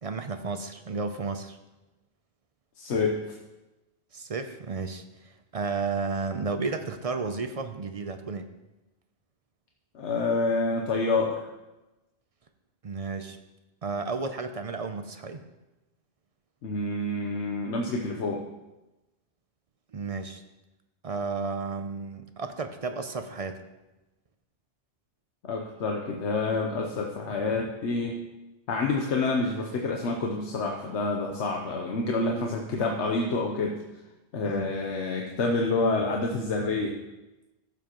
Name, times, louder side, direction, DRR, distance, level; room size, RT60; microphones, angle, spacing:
voice 1, 0.0-1.6 4.1-8.5 12.8-13.4 13.8-15.4 19.9-20.4 21.0-23.6 34.4-34.7, right 4 dB, 45° right, 7 dB, 0.5 m, -33 dB
voice 2, 2.8-3.2 9.9-11.4 16.6-18.4 25.4-28.2 28.7-33.8 34.3-37.0, left 3 dB, 85° left, 1 dB, 1.2 m, -28 dB
15.0 x 7.3 x 3.0 m, 1.0 s
omnidirectional pair, 1.1 m